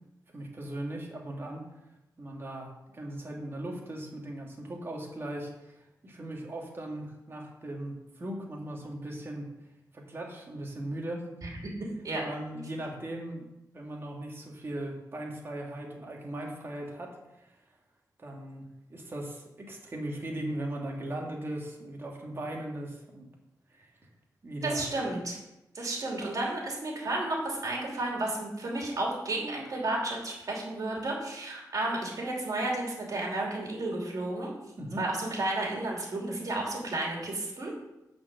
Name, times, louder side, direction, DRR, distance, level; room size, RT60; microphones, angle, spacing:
voice 1, 0.3-1.7 2.2-9.5 9.9-11.3 12.2-13.4 13.7-17.5 18.2-23.3 23.7-23.9 24.4-24.9 34.8-35.0, right 1 dB, 35° right, 0 dB, 1.8 m, -38 dB
voice 2, 24.6-25.4 25.7-34.5 35.0-37.7, right 2 dB, 55° right, -2 dB, 2.8 m, -32 dB
10.0 x 4.5 x 6.9 m, 0.92 s
wide cardioid pair, 180°, 7 cm